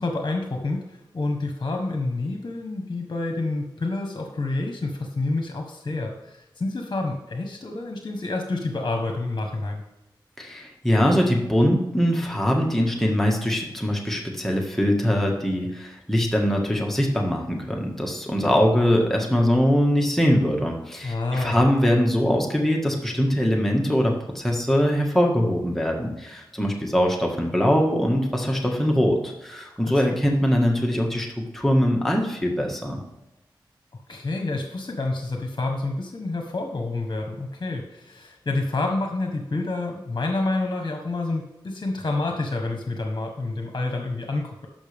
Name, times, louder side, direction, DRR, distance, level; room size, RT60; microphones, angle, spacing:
voice 1, 0.0-9.8 21.0-21.6 29.8-30.2 34.1-44.7, left 2 dB, 55° left, 3 dB, 1.2 m, -28 dB
voice 2, 10.4-31.3 31.5-33.0, equal, 5° left, -1 dB, 1.8 m, -22 dB
12.0 x 5.7 x 3.6 m, 0.94 s
cardioid pair, 45°, 9 cm